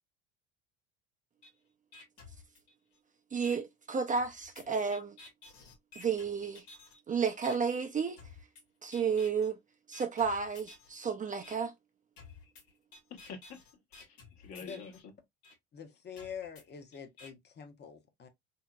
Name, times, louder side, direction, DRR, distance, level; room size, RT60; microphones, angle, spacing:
sound 1, 1.4-1.5 1.9-3.0 3.4-3.6 4.2-7.0 7.4-7.6 8.2-8.6 8.9-9.5 9.9-10.9 11.4-11.6 12.2-15.0 15.4-15.5 16.2-17.3, left 3 dB, 80° left, 1.3 m, -53 dB
voice 1, 3.3-5.2 6.0-6.6 7.1-8.2 8.8-9.6 9.9-11.7, right 6 dB, 25° right, 0.5 m, -32 dB
voice 2, 13.1-15.1, left 6 dB, 60° left, 1.1 m, -48 dB
voice 3, 14.6-15.0 15.7-18.3, left 7 dB, 35° left, 0.8 m, -46 dB
2.8 x 2.8 x 2.2 m
supercardioid pair, 85°, 31 cm